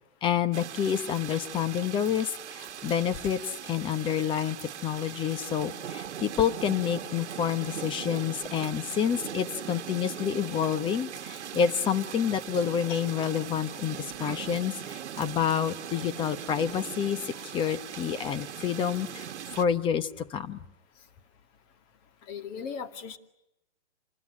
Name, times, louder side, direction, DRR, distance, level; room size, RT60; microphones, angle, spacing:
voice 1, 0.2-20.6, left 8 dB, 15° left, 14 dB, 1.0 m, -29 dB
sound 1, 0.5-19.6, right 9 dB, 75° right, 1.5 m, -40 dB
voice 2, 22.3-23.2, left 6 dB, 30° left, 9 dB, 2.3 m, -38 dB
28.5 x 20.5 x 9.9 m, 0.87 s
hypercardioid pair, 150°, 35 cm